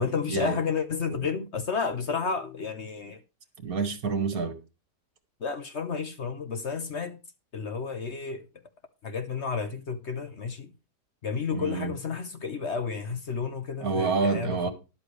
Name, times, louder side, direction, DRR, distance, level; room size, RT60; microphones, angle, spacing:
voice 1, 0.0-3.2 5.4-7.2 7.5-8.5 9.0-10.7 11.2-14.7, left 5 dB, 50° left, 1.1 m, -31 dB
voice 2, 3.6-4.6 11.5-11.9 13.8-14.7, right 5 dB, 60° right, 2.0 m, -28 dB
13.0 x 11.0 x 3.3 m
omnidirectional pair, 1.7 m